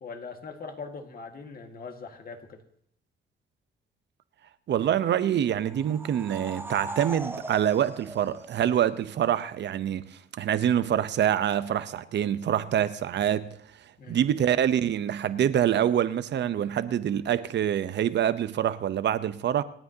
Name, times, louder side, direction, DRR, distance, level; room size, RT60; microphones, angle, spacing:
voice 1, 0.0-2.6 14.0-14.2, left 4 dB, 50° left, 1.8 m, -41 dB
voice 2, 4.7-10.0 10.4-13.5 14.1-19.6, right 10 dB, 60° right, 0.8 m, -25 dB
sound 1, 5.6-9.2, right 2 dB, 10° right, 0.7 m, -39 dB
27.0 x 9.1 x 2.9 m
cardioid pair, 90°, 20 cm